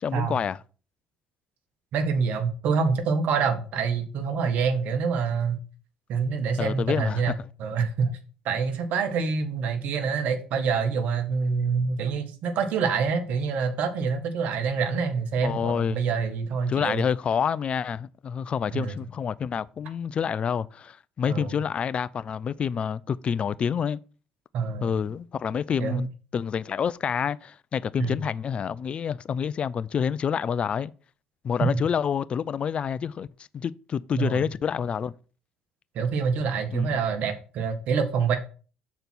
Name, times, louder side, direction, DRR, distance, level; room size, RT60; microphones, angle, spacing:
voice 1, 0.0-0.6 6.6-7.2 15.4-16.0 16.7-24.0 24.8-26.1 26.3-30.9 31.4-33.3 33.5-35.1 36.7-37.0, left 7 dB, 45° left, 0.5 m, -28 dB
voice 2, 1.9-5.6 6.1-8.1 8.4-17.0 18.7-19.0 21.3-21.5 24.5-24.9 25.8-26.0 28.0-28.1 31.6-31.7 34.1-34.5 35.9-38.4, right 5 dB, 65° right, 1.6 m, -26 dB
6.8 x 4.4 x 6.2 m
supercardioid pair, 80°, 3 cm